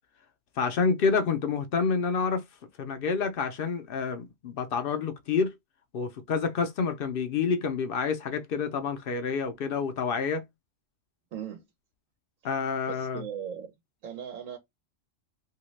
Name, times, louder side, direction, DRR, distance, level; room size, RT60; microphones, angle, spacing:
voice 1, 0.6-2.4 2.8-5.5 5.9-10.4 12.4-13.2, left 5 dB, 60° left, 0.6 m, -28 dB
voice 2, 11.3-11.6 12.9-13.7 14.0-14.6, right 8 dB, 90° right, 1.2 m, -38 dB
2.8 x 2.8 x 3.1 m
omnidirectional pair, 1.3 m